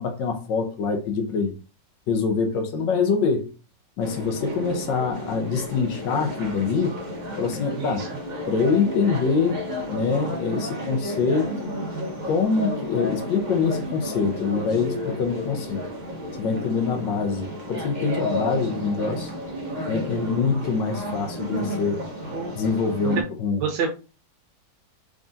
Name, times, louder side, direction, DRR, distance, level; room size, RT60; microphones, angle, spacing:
voice 1, 0.0-1.5 2.1-3.5 4.0-7.0 7.4-8.1 8.5-11.5 12.2-15.8 16.4-19.3 19.9-22.1 22.5-23.6, left 5 dB, 85° left, 1.5 m, -25 dB
sound 1, 4.0-23.2, equal, 30° right, 0.9 m, -32 dB
voice 2, 7.8-8.1 22.3-22.6 23.6-23.9, right 6 dB, 75° right, 1.3 m, -28 dB
3.7 x 3.6 x 2.5 m
omnidirectional pair, 2.0 m